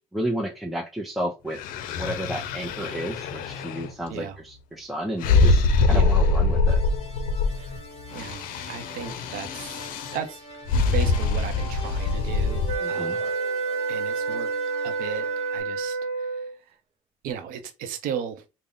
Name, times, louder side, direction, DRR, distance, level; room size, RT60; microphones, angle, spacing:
voice 1, 0.1-1.6 2.0-6.8 12.8-13.2, equal, ahead, 0.6 m, -32 dB
sound 1, 1.5-3.9 5.2-7.8 8.1-10.2 10.7-12.8, left 3 dB, 80° left, 0.5 m, -24 dB
voice 2, 4.1-4.4 5.9-6.2 7.6-7.8 8.1-10.4 10.7-13.3 13.9-14.5 14.8-16.8 17.2-18.4, right 8 dB, 85° right, 0.7 m, -36 dB
sound 2, 6.6-15.6, equal, 45° left, 1.5 m, -43 dB
sound 3, 12.6-16.6, right 4 dB, 40° right, 0.6 m, -28 dB
3.7 x 2.1 x 3.7 m
cardioid pair, 100°, 14 cm